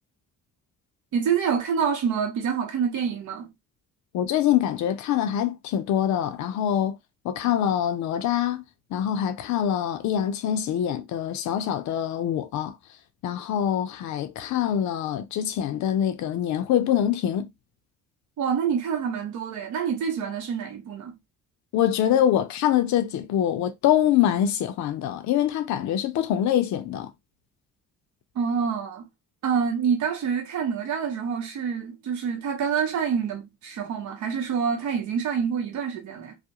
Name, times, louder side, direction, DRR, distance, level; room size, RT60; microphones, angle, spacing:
voice 1, 1.1-3.5 18.4-21.1 28.3-29.1 29.4-36.4, right 7 dB, 70° right, 0.8 m, -27 dB
voice 2, 4.1-7.0 7.2-8.6 8.9-12.8 13.2-17.5 21.7-27.1, left 10 dB, 70° left, 0.5 m, -24 dB
2.4 x 2.0 x 2.8 m
cardioid pair, 90°, 30 cm